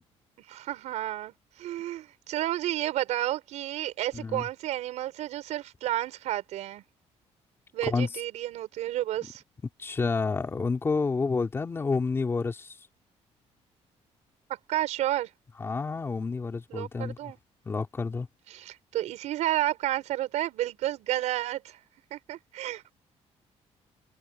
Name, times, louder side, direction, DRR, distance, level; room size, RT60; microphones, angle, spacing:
voice 1, 0.5-6.8 7.7-9.4 14.7-15.3 16.7-17.4 18.5-21.8 22.1-22.9, right 14 dB, 85° right, 5.3 m, -31 dB
voice 2, 9.8-12.7 15.6-17.3 17.7-18.3, left 4 dB, 20° left, 3.6 m, -29 dB
cardioid pair, 175°, 12 cm